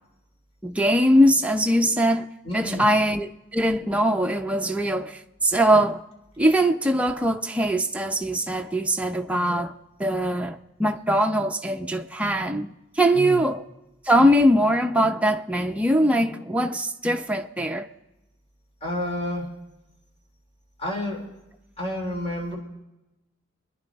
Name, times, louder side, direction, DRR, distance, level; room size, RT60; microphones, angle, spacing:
voice 1, 0.6-2.3 2.5-6.0 6.4-9.7 10.0-13.6 14.0-17.9, equal, 5° right, 0.7 m, -22 dB
voice 2, 2.5-2.9 13.1-13.4 18.8-19.5 20.8-21.2 21.8-22.6, left 1 dB, 30° left, 3.9 m, -29 dB
26.5 x 11.0 x 4.1 m
head